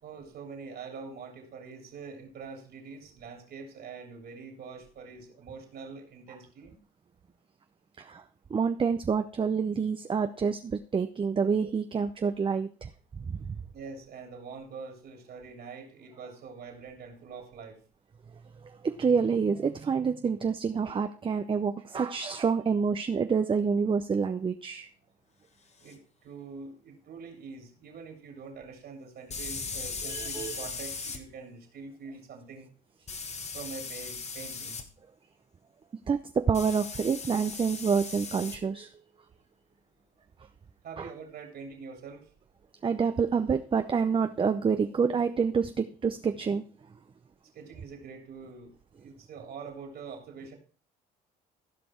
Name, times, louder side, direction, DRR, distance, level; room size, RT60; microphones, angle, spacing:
voice 1, 0.0-6.8 13.7-17.8 25.8-32.7 33.5-34.8 40.8-42.3 47.5-50.6, right 5 dB, 60° right, 3 dB, 3.2 m, -44 dB
voice 2, 8.5-12.9 13.3-13.6 18.6-24.9 30.0-30.6 36.1-38.9 41.0-41.1 42.8-46.6, right 6 dB, 30° right, 8 dB, 0.6 m, -28 dB
sound 1, 25.9-26.0 29.3-31.2 33.1-34.8 36.5-38.6, left 4 dB, 35° left, 1.5 m, -38 dB
15.0 x 5.2 x 4.5 m, 0.39 s
supercardioid pair, 75°, 19 cm